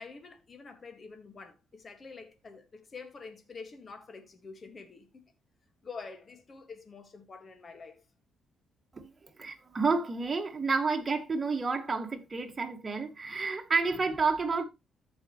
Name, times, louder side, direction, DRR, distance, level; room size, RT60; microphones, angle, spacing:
voice 1, 0.0-5.2 5.8-8.0, left 4 dB, 40° left, 1.9 m, -47 dB
voice 2, 8.9-14.6, right 4 dB, 30° right, 2.0 m, -30 dB
14.0 x 5.3 x 3.1 m
cardioid pair, 90°, 0 cm